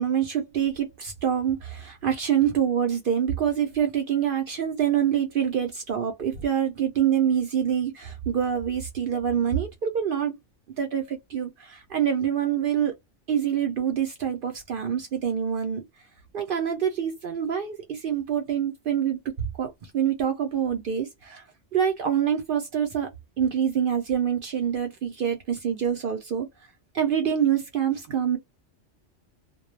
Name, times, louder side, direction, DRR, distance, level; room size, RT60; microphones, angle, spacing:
voice 1, 0.0-10.3 10.8-12.9 13.3-15.8 16.3-19.2 19.6-21.4 21.7-23.1 23.4-26.5 26.9-28.4, right 9 dB, 60° right, 0.6 m, -26 dB
2.2 x 2.1 x 3.1 m
omnidirectional pair, 1.3 m